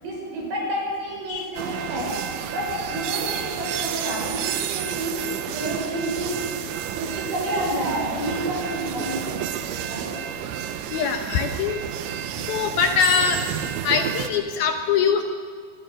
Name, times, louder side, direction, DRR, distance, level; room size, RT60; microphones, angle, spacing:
voice 1, 0.0-2.2 2.5-6.4 6.9-9.5 9.9-10.1 12.0-12.1, right 1 dB, 65° right, -1 dB, 7.6 m, -29 dB
sound 1, 1.6-14.3, right 10 dB, 80° right, 3.4 m, -30 dB
voice 2, 10.9-11.8 12.4-13.4 13.8-15.2, left 7 dB, 70° left, 6 dB, 2.4 m, -22 dB
25.0 x 20.5 x 6.5 m, 2.2 s
omnidirectional pair, 5.3 m